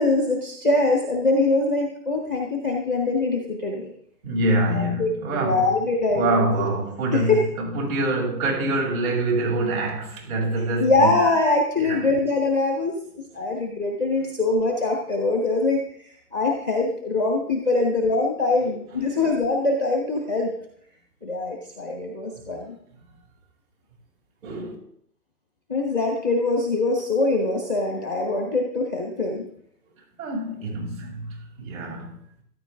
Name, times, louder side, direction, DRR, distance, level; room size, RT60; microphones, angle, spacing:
voice 1, 0.0-3.9 4.7-6.7 7.1-7.4 10.8-13.0 13.3-15.8 16.3-20.5 21.2-22.7 25.7-29.4, left 3 dB, 5° right, 1 dB, 0.5 m, -23 dB
voice 2, 4.2-5.7 6.1-11.1 11.8-12.0 19.2-19.3 24.4-24.7 30.2-31.3 31.6-32.1, right 2 dB, 55° right, 0 dB, 7.1 m, -25 dB
14.0 x 13.0 x 3.7 m, 0.67 s
hypercardioid pair, 150°, 48 cm